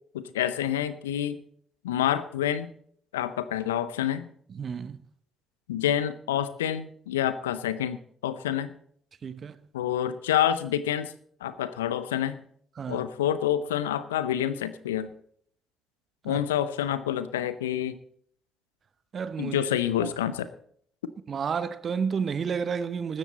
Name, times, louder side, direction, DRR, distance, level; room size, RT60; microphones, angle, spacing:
voice 1, 0.1-1.4 1.8-2.7 3.1-4.3 5.7-8.0 8.2-8.7 9.7-11.1 11.4-12.4 12.9-15.1 16.2-18.0 19.4-20.5, left 10 dB, 85° left, 0.6 m, -27 dB
voice 2, 4.5-5.0 9.2-9.6 12.8-13.1 16.2-16.4 19.1-19.7 20.0-20.1 21.3-23.2, right 6 dB, 50° right, 1.0 m, -31 dB
15.5 x 13.0 x 4.1 m
figure-of-eight pair, 45°, 0 cm